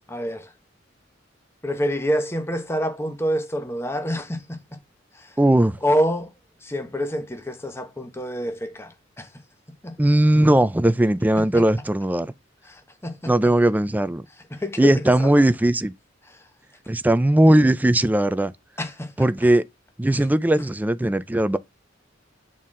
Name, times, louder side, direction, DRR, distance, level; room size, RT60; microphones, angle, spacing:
voice 1, 0.1-0.5 1.6-4.6 5.2-5.3 5.8-6.3 6.6-9.3 9.8-9.9 11.4-11.6 12.7-13.3 14.5-15.3 18.8-19.3, equal, 15° left, 0.9 m, -27 dB
voice 2, 5.4-5.8 10.0-12.3 13.3-14.2 14.8-15.9 16.9-18.5 19.2-19.7 20.0-21.6, right 1 dB, 10° right, 0.4 m, -18 dB
9.0 x 4.2 x 3.7 m
head